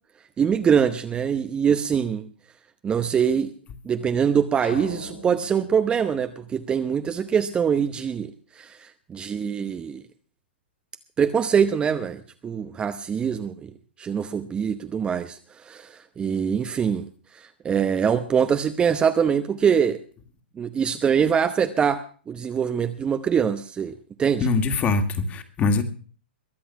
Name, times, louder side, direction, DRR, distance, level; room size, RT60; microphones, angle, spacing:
voice 1, 0.4-2.3 2.8-3.5 3.8-10.0 11.2-13.7 14.0-17.1 17.3-20.0 20.6-24.5, right 7 dB, 15° right, 9 dB, 0.9 m, -24 dB
sound 1, 4.6-7.2, left 2 dB, 80° left, 3.2 m, -41 dB
voice 2, 24.4-25.8, left 4 dB, 25° left, 8 dB, 2.2 m, -23 dB
22.0 x 8.5 x 5.7 m, 0.42 s
figure-of-eight pair, 115°, 6 cm